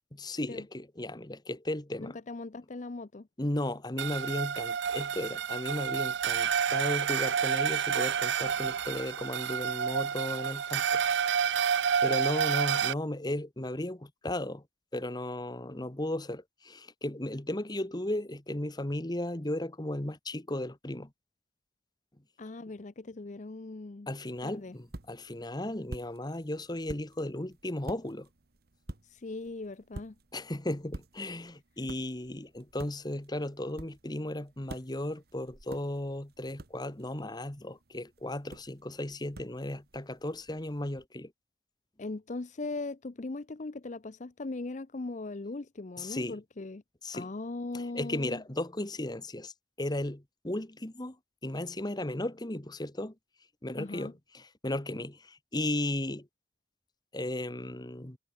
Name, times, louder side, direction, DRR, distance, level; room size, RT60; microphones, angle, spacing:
voice 1, 0.1-2.2 3.4-11.0 12.0-14.6 14.9-21.1 24.1-28.3 30.3-41.3 46.0-46.4 47.0-47.3 47.7-49.5 49.8-51.2 51.4-53.1 53.6-56.3 57.1-58.2, left 1 dB, 25° left, 1.4 m, -35 dB
voice 2, 2.3-3.3 22.4-24.1 24.4-24.8 29.0-30.1 42.0-46.8 47.1-48.4 53.8-54.1, left 3 dB, 45° left, 0.6 m, -39 dB
sound 1, 4.0-12.9, right 7 dB, 80° right, 0.5 m, -29 dB
sound 2, 24.3-41.1, right 1 dB, 60° right, 1.5 m, -50 dB
head